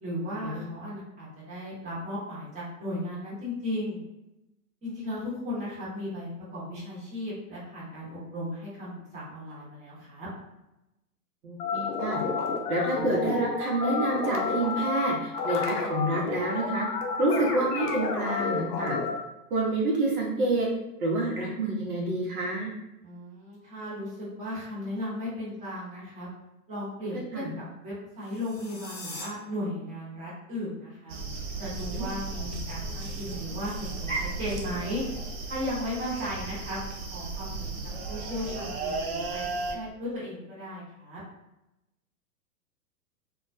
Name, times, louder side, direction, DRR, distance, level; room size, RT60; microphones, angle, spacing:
voice 1, 0.0-4.0 4.8-10.3 23.0-26.3 26.7-31.1 31.6-35.0 35.4-37.8 38.1-41.2, left 1 dB, 15° right, -8 dB, 0.9 m, -36 dB
voice 2, 11.4-12.2 12.7-16.9 17.2-19.0 19.5-20.7 21.0-22.7 27.3-27.5 31.9-32.0, right 2 dB, 65° right, -3 dB, 0.8 m, -28 dB
sound 1, 11.6-19.2, left 4 dB, 75° left, 0.7 m, -30 dB
sound 2, 28.2-29.3, left 2 dB, 30° left, 0.8 m, -42 dB
sound 3, 31.1-39.7, right 3 dB, 45° right, 0.4 m, -35 dB
2.2 x 2.2 x 2.5 m, 0.92 s
hypercardioid pair, 120°, 47 cm